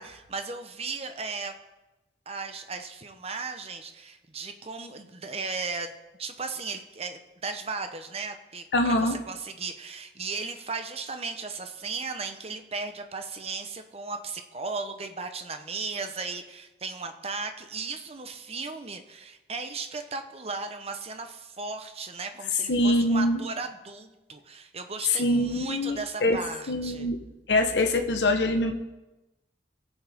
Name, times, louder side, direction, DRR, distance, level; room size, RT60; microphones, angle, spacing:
voice 1, 0.0-1.5 2.3-5.9 6.2-27.1, right 4 dB, 35° right, 7 dB, 0.9 m, -36 dB
voice 2, 8.7-9.2 22.7-23.4 25.1-26.4 26.7-27.2 27.5-28.7, left 1 dB, 80° left, 4 dB, 1.0 m, -24 dB
18.5 x 7.2 x 3.6 m, 1.0 s
head